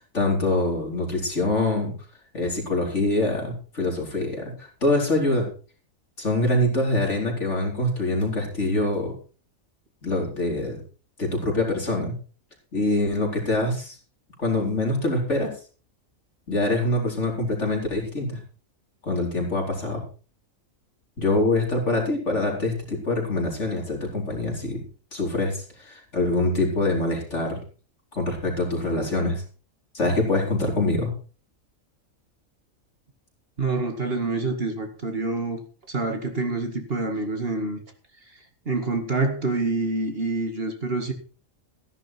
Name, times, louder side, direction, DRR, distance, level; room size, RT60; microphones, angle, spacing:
voice 1, 0.1-1.9 2.3-5.5 6.2-9.1 10.0-10.8 11.2-12.1 12.7-14.0 14.4-15.5 16.5-18.4 19.0-20.0 21.2-24.8 25.1-27.6 28.1-29.4 29.9-31.1, left 2 dB, 55° left, 0 dB, 4.7 m, -24 dB
voice 2, 33.6-35.6 35.9-37.8 38.7-41.1, right 3 dB, 45° right, 5 dB, 2.3 m, -26 dB
15.0 x 11.0 x 4.5 m, 0.38 s
omnidirectional pair, 1.4 m